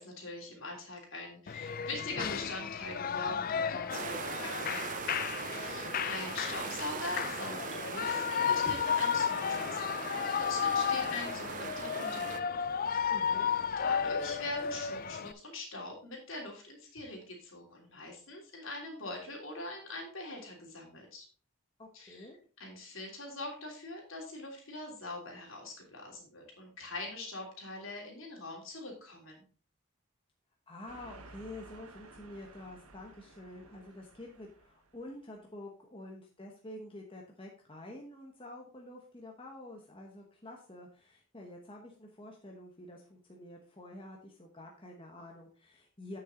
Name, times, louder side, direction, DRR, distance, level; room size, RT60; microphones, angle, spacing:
voice 1, 0.0-4.2 4.4-12.5 13.8-21.2 21.9-22.3 22.6-29.4, left 2 dB, 65° left, 0 dB, 3.2 m, -43 dB
Shout / Cheering, 1.5-15.3, left 7 dB, 40° left, 0.4 m, -33 dB
sound 1, 3.9-12.4, right 6 dB, 35° right, 0.4 m, -41 dB
voice 2, 6.5-6.8 13.1-13.5 21.8-22.4 30.7-46.2, left 1 dB, 25° left, 0 dB, 1.1 m, -48 dB
sound 2, 30.9-35.0, right 2 dB, 85° right, 1.2 m, -55 dB
8.7 x 6.6 x 3.8 m, 0.40 s
head